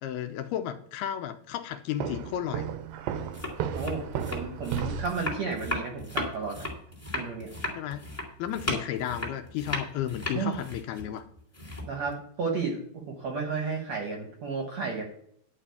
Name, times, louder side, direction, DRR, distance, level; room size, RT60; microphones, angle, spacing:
voice 1, 0.0-2.7 7.8-8.0 8.4-11.2, left 11 dB, 80° left, 7 dB, 2.5 m, -33 dB
Walk footsteps, 2.0-5.3, right 7 dB, 85° right, 3.0 m, -34 dB
sound 1, 3.2-12.1, left 1 dB, 5° left, 1.3 m, -36 dB
voice 2, 3.7-6.7 7.1-7.5 10.3-10.6 11.9-15.0, right 4 dB, 60° right, 2 dB, 1.8 m, -33 dB
11.0 x 5.0 x 8.3 m, 0.67 s
omnidirectional pair, 4.8 m